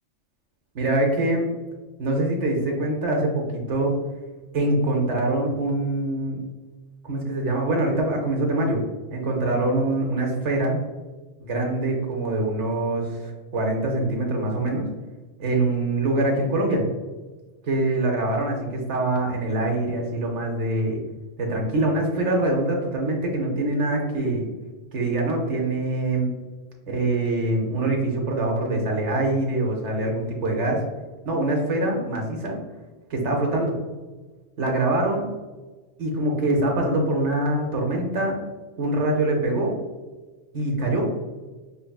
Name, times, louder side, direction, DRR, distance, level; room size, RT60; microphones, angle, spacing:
voice 1, 0.8-1.5 2.0-3.9 4.5-6.4 7.0-8.8 9.1-10.8 11.4-14.9 15.4-16.8 17.7-21.0 21.4-24.4 24.9-26.3 26.9-30.8 31.2-32.6 33.1-33.7 34.6-35.3 36.0-38.3 38.8-39.7 40.5-41.0, right 2 dB, 75° right, 0 dB, 1.0 m, -24 dB
4.5 x 3.0 x 2.3 m, 1.2 s
omnidirectional pair, 1.2 m